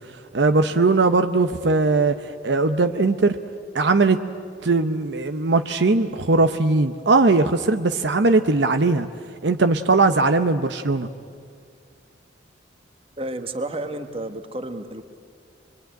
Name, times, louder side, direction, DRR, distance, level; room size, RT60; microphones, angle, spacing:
voice 1, 0.3-2.1 2.4-3.4 3.7-4.2 4.6-9.1 9.4-11.1, right 3 dB, 65° right, 8 dB, 0.8 m, -19 dB
voice 2, 13.2-15.1, right 1 dB, 30° right, 7 dB, 1.3 m, -31 dB
24.5 x 22.5 x 9.1 m, 2.3 s
head